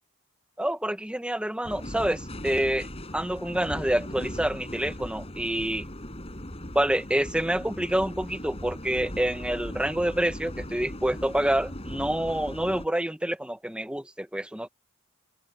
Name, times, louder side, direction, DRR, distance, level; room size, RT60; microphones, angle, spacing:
voice 1, 0.6-2.9 3.1-5.9 6.7-14.7, right 1 dB, 5° right, 0.9 m, -27 dB
sound 1, 1.6-12.9, left 1 dB, 25° left, 4.9 m, -39 dB
head